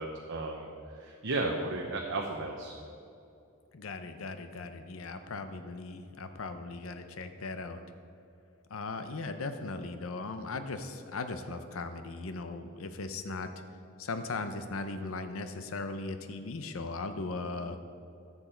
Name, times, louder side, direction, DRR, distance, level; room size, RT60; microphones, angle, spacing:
voice 1, 0.0-2.7, right 2 dB, 60° right, 1 dB, 0.8 m, -34 dB
voice 2, 3.7-7.8 8.7-13.5 14.0-17.8, left 3 dB, 70° left, 8 dB, 0.7 m, -38 dB
14.0 x 7.1 x 4.4 m, 2.6 s
head